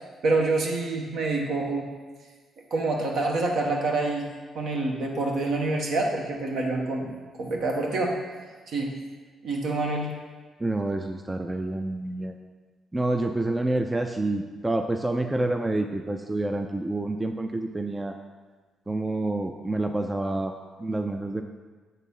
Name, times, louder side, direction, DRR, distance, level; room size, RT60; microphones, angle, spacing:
voice 1, 0.2-1.9 2.7-4.3 4.5-7.1 7.4-8.1 8.7-8.9 9.4-10.1, right 2 dB, 65° right, 0 dB, 1.3 m, -26 dB
voice 2, 10.6-12.3 12.9-18.2 18.9-21.4, right 2 dB, 15° right, 5 dB, 0.4 m, -28 dB
7.3 x 4.0 x 5.4 m, 1.4 s
cardioid pair, 90°, 0 cm